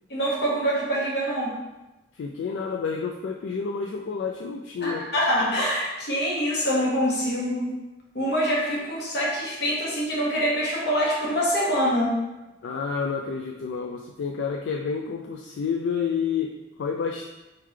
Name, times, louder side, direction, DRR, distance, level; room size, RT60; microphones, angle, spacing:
voice 1, 0.1-1.5 4.8-7.7 8.1-12.1, equal, 65° left, -4 dB, 1.3 m, -25 dB
voice 2, 2.1-5.1 12.6-17.3, left 5 dB, 85° left, 1 dB, 0.3 m, -29 dB
4.3 x 3.7 x 3.2 m, 1.0 s
head